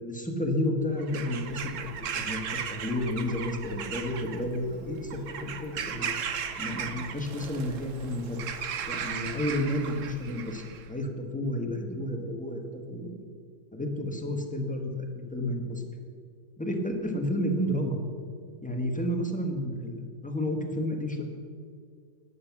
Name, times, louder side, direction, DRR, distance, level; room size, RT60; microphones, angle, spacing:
voice 1, 0.0-6.1 6.6-8.4 8.9-12.6 12.9-13.2 13.7-15.8 16.6-18.0 18.6-21.2, left 1 dB, 5° left, 3 dB, 1.2 m, -31 dB
Bird vocalization bird call bird song / Crow, 1.0-10.9, right 7 dB, 55° right, 1.0 m, -37 dB
13.5 x 10.0 x 6.0 m, 2.1 s
omnidirectional pair, 2.0 m